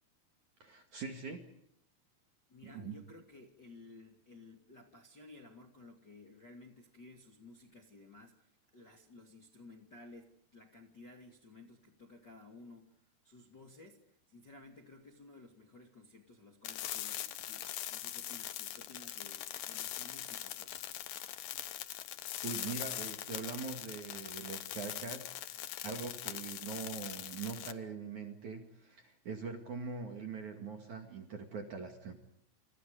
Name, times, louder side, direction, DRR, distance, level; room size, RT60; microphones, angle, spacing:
voice 1, 0.6-1.5 2.6-3.0 22.4-32.1, right 5 dB, 50° right, 4 dB, 2.8 m, -43 dB
voice 2, 2.5-20.8, left 2 dB, 30° left, 2 dB, 2.0 m, -56 dB
sound 1, 16.6-27.7, left 13 dB, 90° left, 1.9 m, -42 dB
29.0 x 28.5 x 5.1 m, 0.72 s
omnidirectional pair, 5.7 m